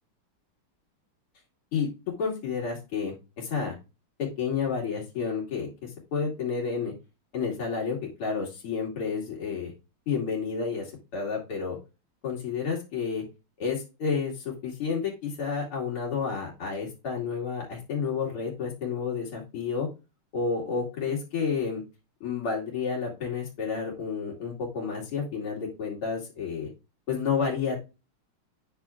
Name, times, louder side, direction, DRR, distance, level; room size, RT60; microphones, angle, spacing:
voice 1, 2.2-3.8 4.4-6.9 7.3-9.7 10.1-11.8 12.2-13.2 13.6-19.9 20.3-21.8 22.2-26.7 27.1-27.9, left 5 dB, 85° left, -2 dB, 3.2 m, -30 dB
9.6 x 6.3 x 2.4 m, 0.28 s
omnidirectional pair, 2.4 m